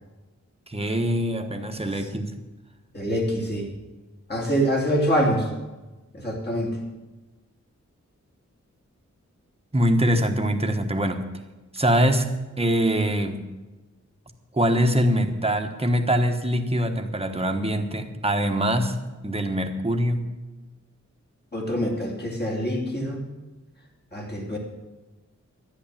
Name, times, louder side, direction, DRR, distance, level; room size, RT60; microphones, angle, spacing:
voice 1, 0.7-2.3 9.7-11.3 11.7-12.3 12.6-13.5 14.5-20.3, equal, 20° right, 5 dB, 1.2 m, -23 dB
voice 2, 2.9-3.7 4.3-5.5 6.1-6.8 21.5-23.2 24.1-24.6, equal, 35° left, 0 dB, 2.9 m, -25 dB
11.5 x 9.9 x 7.4 m, 1.2 s
wide cardioid pair, 90°, 29 cm